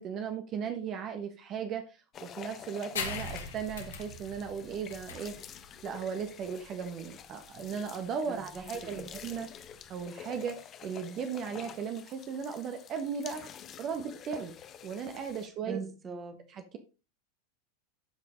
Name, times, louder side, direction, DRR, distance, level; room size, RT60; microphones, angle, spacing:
voice 1, 0.0-5.3 5.8-9.5 9.9-10.6 10.8-13.4 13.8-14.5 14.8-15.8 16.5-16.8, right 6 dB, 40° right, 1.3 m, -36 dB
sound 1, 2.1-15.5, left 9 dB, 35° left, 1.1 m, -49 dB
sound 2, 2.9-10.1, left 5 dB, 75° left, 2.2 m, -43 dB
voice 2, 8.3-9.1 15.7-16.4, right 4 dB, 25° right, 1.6 m, -41 dB
12.0 x 5.9 x 3.8 m
figure-of-eight pair, 90°, 0 cm